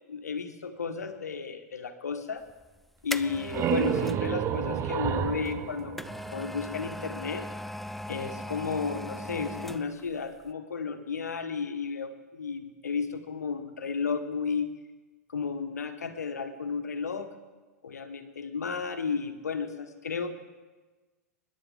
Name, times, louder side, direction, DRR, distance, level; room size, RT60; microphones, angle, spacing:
voice 1, 0.1-2.4 3.0-5.9 6.3-7.5 8.1-14.7 15.3-17.3 17.8-20.3, left 5 dB, 80° left, 8 dB, 1.3 m, -33 dB
sound 1, 2.5-4.3 5.4-10.1 10.4-10.5, left 1 dB, ahead, 0.4 m, -39 dB
sound 2, 3.2-6.8, right 9 dB, 30° right, 0.8 m, -30 dB
24.5 x 10.5 x 3.7 m, 1.3 s
figure-of-eight pair, 95°, 9 cm